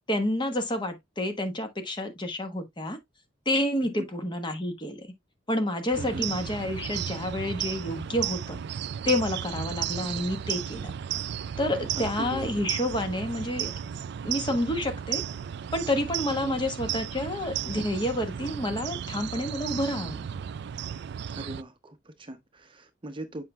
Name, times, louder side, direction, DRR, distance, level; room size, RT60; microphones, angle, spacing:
voice 1, 0.1-3.0 3.4-5.1 5.5-8.6 9.0-10.9 11.6-13.7 14.2-15.2 15.7-20.3, left 1 dB, 25° left, 1.3 m, -29 dB
sound 1, 5.9-21.6, right 9 dB, 65° right, 0.3 m, -34 dB
voice 2, 6.0-6.3 11.9-12.5 16.3-16.5 21.3-23.4, right 1 dB, 25° right, 0.7 m, -39 dB
7.6 x 5.7 x 2.3 m
head